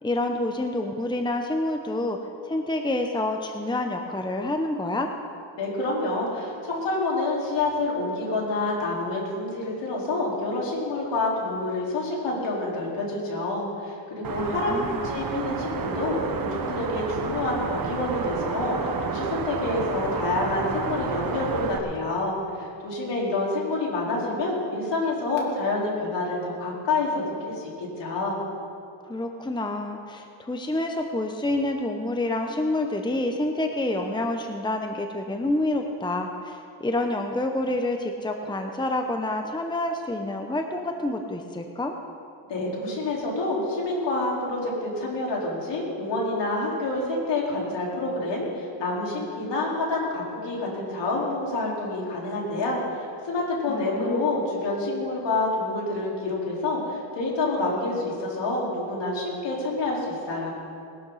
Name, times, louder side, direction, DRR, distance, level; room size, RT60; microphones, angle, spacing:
voice 1, 0.0-2.2 2.4-5.1 14.4-15.1 29.1-41.9 53.7-54.3, left 2 dB, 10° left, 4 dB, 1.0 m, -28 dB
voice 2, 5.6-28.4 42.5-60.5, left 2 dB, 65° left, -4 dB, 4.7 m, -28 dB
sound 1, 14.2-21.8, right 5 dB, 45° right, 1.4 m, -31 dB
20.5 x 12.0 x 4.2 m, 2.4 s
cardioid pair, 100°, 46 cm